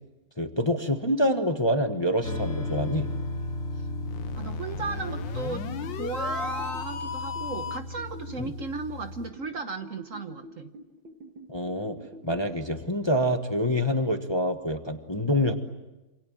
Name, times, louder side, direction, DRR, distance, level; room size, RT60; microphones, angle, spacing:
voice 1, 0.4-3.1 8.4-8.5 11.5-12.0 12.2-15.5, equal, 15° left, 6 dB, 1.2 m, -26 dB
sound 1, 2.2-9.3, left 1 dB, 40° left, 2.7 m, -35 dB
sound 2, 4.1-8.0, left 7 dB, 75° left, 1.8 m, -36 dB
voice 2, 4.4-5.7 6.0-10.7, right 3 dB, 50° right, 8 dB, 1.3 m, -35 dB
sound 3, 4.8-12.5, right 1 dB, 85° right, 2.5 m, -48 dB
27.5 x 27.0 x 7.5 m, 1.1 s
omnidirectional pair, 2.0 m